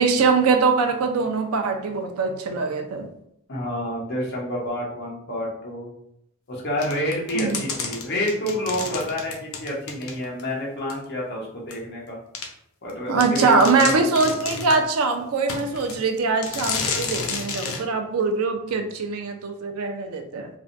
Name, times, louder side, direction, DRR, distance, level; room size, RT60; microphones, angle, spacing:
voice 1, 0.0-3.1 7.3-7.5 13.1-20.5, right 4 dB, 90° right, 4 dB, 0.4 m, -22 dB
voice 2, 3.5-5.9 6.5-12.2 12.8-14.0, left 1 dB, 55° left, -4 dB, 0.9 m, -28 dB
sound 1, 6.8-10.5 10.9-11.0 11.7-11.8 12.3-12.5 12.9-13.0 13.2-14.8 15.5-16.0 16.4-17.8, left 5 dB, 80° left, 0.5 m, -31 dB
3.4 x 2.1 x 2.6 m, 0.76 s
head